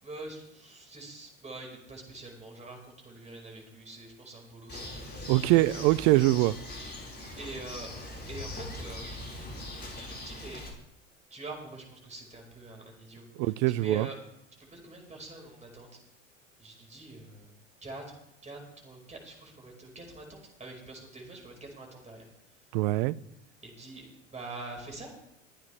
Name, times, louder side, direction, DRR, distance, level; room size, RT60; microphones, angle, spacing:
voice 1, 0.0-5.0 7.4-7.9 8.3-9.2 10.1-10.6 11.3-14.2 14.6-15.9 16.6-17.5 17.8-18.2 18.4-22.2 23.6-25.1, right 2 dB, 15° right, 4.9 m, -45 dB
Bird, 4.7-10.7, left 1 dB, 25° left, 4.7 m, -41 dB
voice 2, 5.3-6.5 13.4-14.1 22.7-23.2, right 18 dB, 50° right, 0.5 m, -23 dB
23.0 x 9.6 x 3.4 m
figure-of-eight pair, 75°, 38 cm